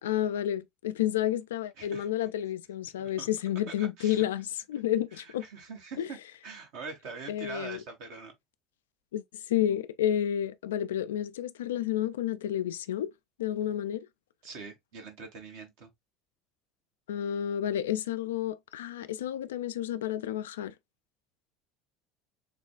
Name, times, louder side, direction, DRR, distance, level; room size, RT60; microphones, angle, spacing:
voice 1, 0.0-5.5 6.0-6.1 7.3-7.8 9.1-13.1 13.4-14.1 17.1-20.7, left 11 dB, 75° left, 0.4 m, -30 dB
voice 2, 1.8-2.1 3.0-3.3 3.8-4.2 5.1-6.2 6.4-8.3 14.4-15.9, right 4 dB, 65° right, 1.5 m, -43 dB
6.6 x 2.4 x 2.3 m
figure-of-eight pair, 65°, 0 cm